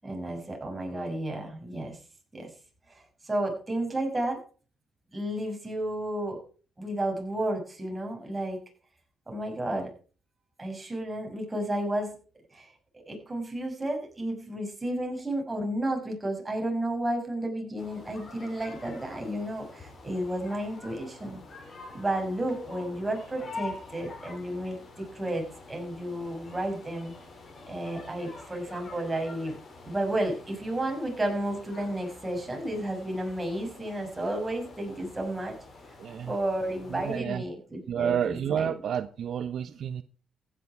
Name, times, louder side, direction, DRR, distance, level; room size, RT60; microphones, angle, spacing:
voice 1, 0.0-2.0 2.3-2.5 2.9-4.4 5.1-6.4 6.8-8.6 9.3-9.9 10.6-12.1 12.5-12.7 12.9-21.4 21.9-27.1 27.7-29.6 29.8-35.6 36.3-38.7, right 1 dB, 15° right, 6.2 m, -32 dB
sound 1, 17.8-37.2, left 3 dB, 40° left, 5.7 m, -46 dB
voice 2, 36.0-36.3 36.9-37.4 37.9-40.0, right 8 dB, 60° right, 0.8 m, -30 dB
15.0 x 10.0 x 4.8 m
cardioid pair, 90°, 0 cm